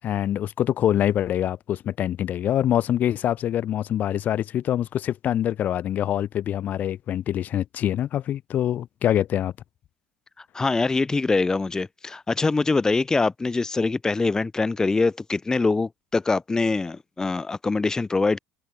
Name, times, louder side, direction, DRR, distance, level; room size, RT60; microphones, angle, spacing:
voice 1, 0.0-9.5, left 11 dB, 50° left, 0.8 m, -25 dB
voice 2, 10.5-18.4, left 3 dB, 15° left, 0.7 m, -23 dB
hypercardioid pair, 85°, 4 cm